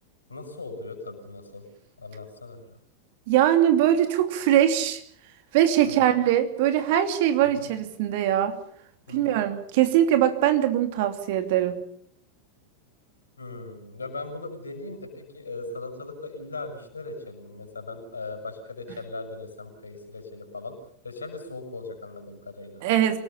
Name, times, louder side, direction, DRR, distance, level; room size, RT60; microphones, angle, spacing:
voice 1, 0.3-1.6 2.0-2.7 6.0-6.1 7.4-7.7 9.1-9.4 13.4-20.8 21.0-22.8, left 3 dB, 75° left, 5 dB, 6.7 m, -38 dB
voice 2, 3.3-5.0 5.5-8.6 9.1-11.8 22.8-23.2, right 11 dB, 50° right, 8 dB, 2.8 m, -22 dB
27.5 x 18.5 x 7.0 m, 0.65 s
figure-of-eight pair, 90°, 0 cm